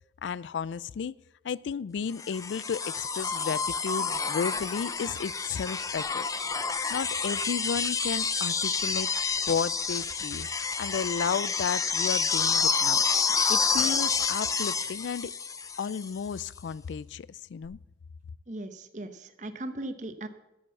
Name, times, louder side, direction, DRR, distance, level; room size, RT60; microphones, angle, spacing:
voice 1, 0.2-1.1 1.4-6.3 6.9-9.1 9.5-10.5 10.8-13.0 13.5-15.3 15.8-17.8, left 6 dB, 90° left, 0.4 m, -33 dB
sound 1, 2.2-16.2 17.6-17.7, left 5 dB, 20° left, 0.6 m, -29 dB
voice 2, 18.5-20.3, right 1 dB, 40° right, 1.0 m, -38 dB
13.0 x 7.7 x 7.0 m
head